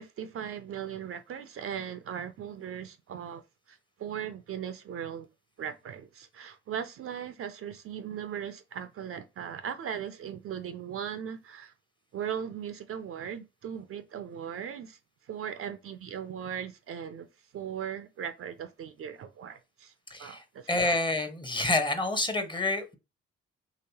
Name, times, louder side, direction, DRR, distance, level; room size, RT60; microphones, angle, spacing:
voice 1, 0.0-5.3 5.6-11.7 12.1-17.3 17.5-19.9 20.2-20.9, right 8 dB, 50° right, 0.4 m, -38 dB
voice 2, 20.1-23.0, left 2 dB, 15° left, 0.7 m, -28 dB
3.1 x 2.9 x 2.8 m
hypercardioid pair, 50°, 30 cm